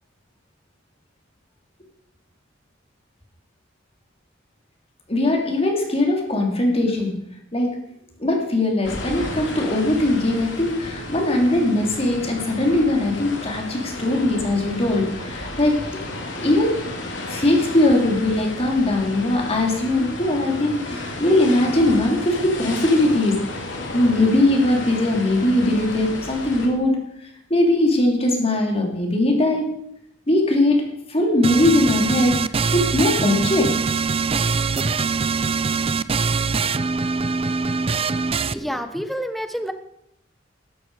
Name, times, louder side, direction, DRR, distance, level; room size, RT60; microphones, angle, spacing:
voice 1, 5.1-7.2 7.5-7.7 8.2-16.1 16.4-16.7 17.3-23.4 23.9-27.0 27.5-29.7 30.3-32.4 32.7-33.7 38.6-38.8, left 1 dB, 30° left, 1 dB, 3.1 m, -20 dB
sound 1, 8.8-26.7, left 2 dB, 70° left, 3.2 m, -32 dB
sound 2, 31.4-38.5, right 4 dB, 30° right, 0.5 m, -23 dB
voice 2, 38.5-39.7, equal, ahead, 8 dB, 1.1 m, -28 dB
15.5 x 13.0 x 4.8 m, 0.77 s
head